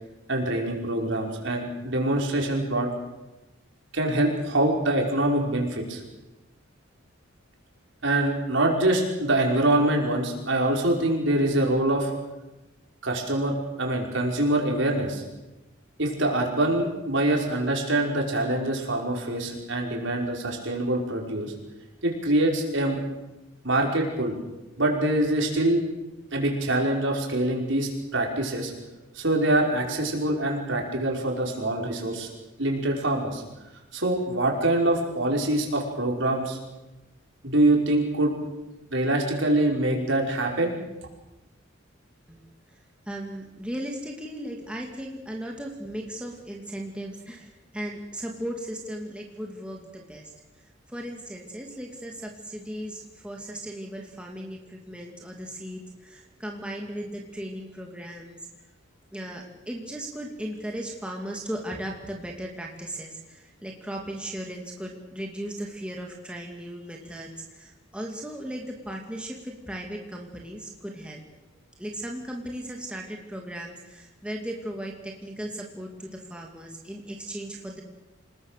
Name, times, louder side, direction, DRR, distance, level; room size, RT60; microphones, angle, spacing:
voice 1, 0.3-2.9 3.9-6.0 8.0-12.1 13.0-15.2 16.0-21.5 22.0-23.0 23.6-24.4 24.8-25.8 26.3-28.7 29.2-32.3 32.6-33.4 33.9-36.6 37.4-38.3 38.9-40.7, right 1 dB, 65° right, 0 dB, 5.6 m, -24 dB
voice 2, 43.1-50.3 50.9-58.4 59.1-71.2 71.8-77.8, right 1 dB, 5° right, 0 dB, 2.6 m, -37 dB
28.0 x 19.5 x 6.8 m, 1.0 s
head